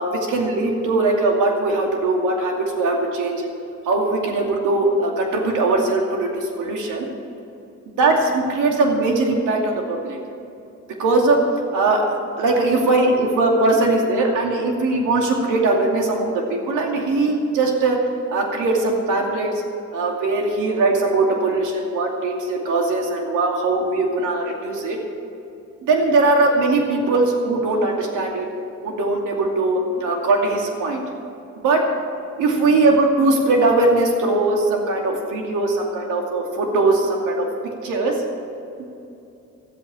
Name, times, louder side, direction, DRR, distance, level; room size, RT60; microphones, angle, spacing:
voice 1, 0.0-3.5 3.9-7.1 8.0-10.2 11.0-11.4 11.7-12.1 12.4-18.0 18.3-19.6 19.9-25.0 25.8-28.5 28.8-31.0 31.6-32.0 32.4-38.2 38.8-38.9, right 2 dB, 85° right, 1 dB, 2.5 m, -20 dB
13.5 x 8.5 x 8.9 m, 2.7 s
cardioid pair, 90°, 30 cm